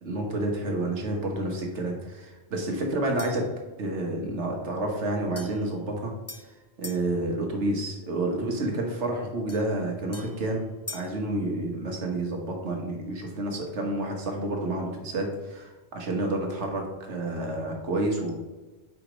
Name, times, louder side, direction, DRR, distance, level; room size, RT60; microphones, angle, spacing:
voice 1, 0.0-3.5 3.8-18.3, right 2 dB, 85° right, 1 dB, 1.5 m, -30 dB
sound 1, 3.2-3.5 5.4-7.1 9.5-11.2, left 2 dB, 20° left, 0.4 m, -44 dB
4.9 x 4.9 x 5.0 m, 1.2 s
omnidirectional pair, 1.2 m